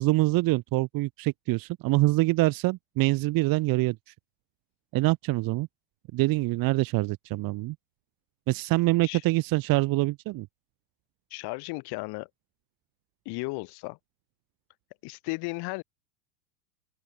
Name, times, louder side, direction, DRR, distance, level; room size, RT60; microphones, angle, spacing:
voice 1, 0.0-4.0 4.9-5.7 6.1-7.8 8.5-10.5, right 20 dB, 45° right, 2.4 m, -25 dB
voice 2, 11.3-12.3 13.2-14.0 15.0-15.8, left 26 dB, 50° left, 4.2 m, -35 dB
open air
hypercardioid pair, 115°, 49 cm